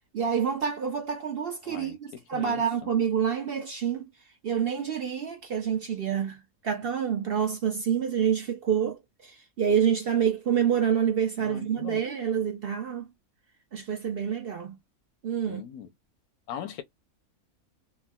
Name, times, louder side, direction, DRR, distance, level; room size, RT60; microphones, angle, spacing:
voice 1, 0.1-4.0 4.4-13.1 13.7-14.8 15.2-15.6, right 8 dB, 60° right, 0.6 m, -27 dB
voice 2, 1.6-2.9 11.4-12.0 15.5-15.9 16.5-16.8, left 10 dB, 85° left, 1.1 m, -40 dB
3.4 x 2.0 x 2.2 m
omnidirectional pair, 1.5 m